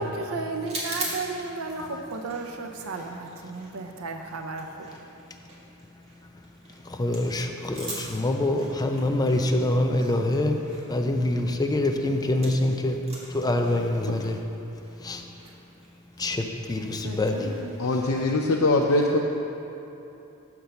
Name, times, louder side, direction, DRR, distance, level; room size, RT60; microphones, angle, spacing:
voice 1, 0.0-4.9 14.3-14.4 17.0-17.7, right 3 dB, 80° right, 4 dB, 0.5 m, -34 dB
sound 1, 0.6-12.7 12.9-18.2, right 1 dB, 30° right, 1.6 m, -42 dB
voice 2, 1.7-2.1 2.8-18.0, left 1 dB, 20° left, 4 dB, 0.4 m, -28 dB
voice 3, 17.8-19.2, left 2 dB, 75° left, -1 dB, 0.5 m, -22 dB
6.9 x 5.9 x 6.4 m, 2.9 s
head